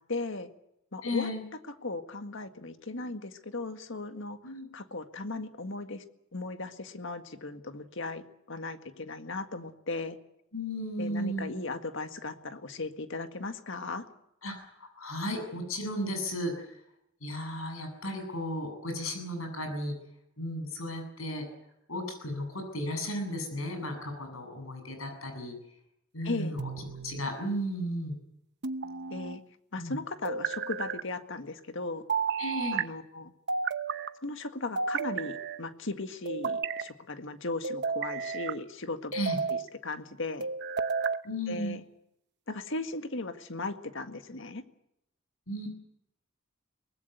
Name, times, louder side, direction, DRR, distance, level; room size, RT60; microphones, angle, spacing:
voice 1, 0.1-0.5 0.9-1.3 1.8-6.0 6.3-10.2 11.0-14.1 26.2-26.6 29.1-29.4 29.7-32.0 32.7-33.3 34.2-39.1 39.5-40.5 41.5-41.8 42.5-44.6, left 3 dB, 65° left, 8 dB, 1.8 m, -37 dB
voice 2, 1.0-1.4 4.4-4.7 10.5-11.6 14.4-16.7 17.2-19.9 20.4-21.5 21.9-25.5 26.1-26.6 27.0-28.1 29.8-29.9 32.4-32.8 39.1-39.4 41.2-41.8 45.5-45.7, equal, 85° left, 5 dB, 7.8 m, -34 dB
sound 1, 26.6-27.3 28.6-29.4 30.2-31.0 32.1-32.9 33.5-34.1 34.8-35.6 36.3-36.9 37.6-38.6 39.1-39.7 40.4-41.2, right 5 dB, 55° right, 0.9 m, -32 dB
23.5 x 20.0 x 8.1 m, 0.80 s
head